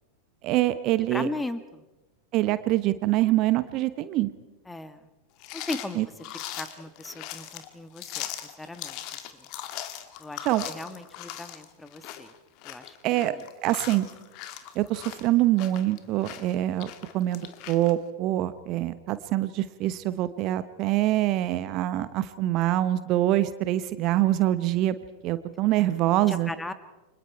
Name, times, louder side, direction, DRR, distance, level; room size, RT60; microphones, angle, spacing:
voice 1, 0.4-1.3 2.3-4.3 6.0-6.1 10.4-10.7 13.0-13.3 13.6-14.1 14.7-24.9 25.2-26.5, right 15 dB, 40° right, 14 dB, 1.0 m, -25 dB
voice 2, 1.1-1.8 4.7-5.1 5.5-6.0 6.5-8.3 8.6-9.0 9.4-9.5 10.2-12.3 12.6-13.4 25.8-25.9 26.3-26.7, left 2 dB, 5° left, 12 dB, 1.5 m, -37 dB
sound 1, 5.4-17.9, left 12 dB, 40° left, 1.8 m, -40 dB
29.5 x 25.0 x 4.6 m, 1.1 s
figure-of-eight pair, 90°, 0 cm